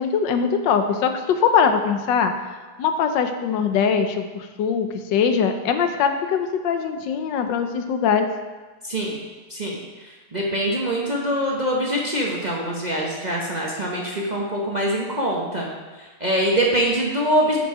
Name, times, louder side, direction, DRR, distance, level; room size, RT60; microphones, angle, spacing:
voice 1, 0.0-2.3 2.8-8.3, left 6 dB, 85° left, 7 dB, 1.4 m, -21 dB
voice 2, 8.8-9.2 9.5-9.8 10.3-15.7 16.0-17.6, equal, 35° right, -3 dB, 0.8 m, -24 dB
7.7 x 6.3 x 4.9 m, 1.3 s
omnidirectional pair, 2.0 m